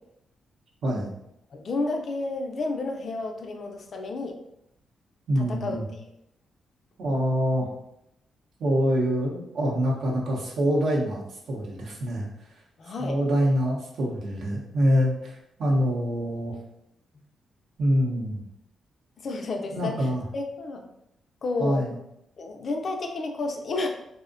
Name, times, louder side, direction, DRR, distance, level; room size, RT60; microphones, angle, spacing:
voice 1, 0.8-1.1 5.3-5.8 7.0-7.7 8.6-12.3 13.0-15.3 15.6-16.5 17.8-18.4 19.7-20.2 21.6-21.9, equal, 70° right, -2 dB, 0.7 m, -25 dB
voice 2, 1.5-4.4 5.4-5.8 12.8-13.2 19.2-20.1 20.3-20.8 21.4-21.9 22.4-23.9, left 3 dB, 50° left, 3 dB, 0.4 m, -31 dB
2.5 x 2.0 x 2.5 m, 0.81 s
cardioid pair, 100°, 0 cm